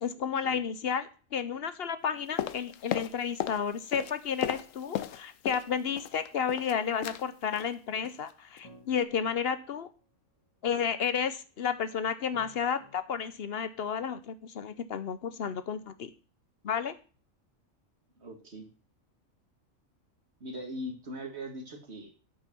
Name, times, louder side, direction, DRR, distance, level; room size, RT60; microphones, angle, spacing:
voice 1, 0.0-9.9 10.6-16.1 16.6-17.0, left 7 dB, 55° left, 12 dB, 0.8 m, -32 dB
sound 1, 2.4-3.6 3.9-5.7 6.0-6.7 7.0-7.2 7.5-7.7 8.1-8.3 8.6-8.7, left 11 dB, 80° left, 1.0 m, -35 dB
sound 2, 7.0-13.7, left 2 dB, 25° left, 1.9 m, -57 dB
voice 2, 18.2-18.7 20.4-22.1, equal, 55° right, 3 dB, 2.2 m, -40 dB
8.8 x 5.6 x 6.1 m, 0.37 s
omnidirectional pair, 1.3 m